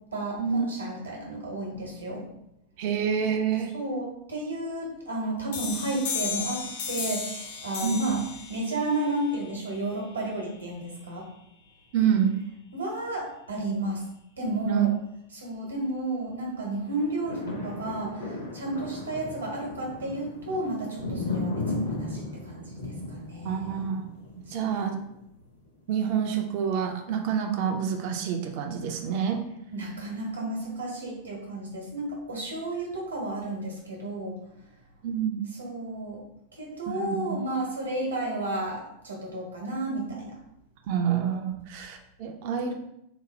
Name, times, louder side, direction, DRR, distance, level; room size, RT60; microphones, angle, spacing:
voice 1, 0.1-2.2 3.7-8.2 8.5-11.3 12.7-14.0 14.4-14.9 15.3-23.9 24.5-24.7 29.7-34.4 35.6-36.2 36.5-40.4, right 2 dB, 75° right, -1 dB, 1.0 m, -32 dB
voice 2, 2.8-3.7 7.8-8.1 11.9-12.4 14.6-14.9 23.4-24.0 24.4-25.0 25.9-29.4 35.0-35.4 36.9-37.4 40.9-42.7, right 7 dB, 45° right, 4 dB, 0.4 m, -27 dB
sound 1, 5.5-10.9, left 6 dB, 55° left, 0.6 m, -36 dB
sound 2, 16.9-25.1 25.7-25.8, left 2 dB, 70° left, 0.9 m, -35 dB
3.9 x 2.1 x 3.1 m, 0.79 s
figure-of-eight pair, 90°, 0 cm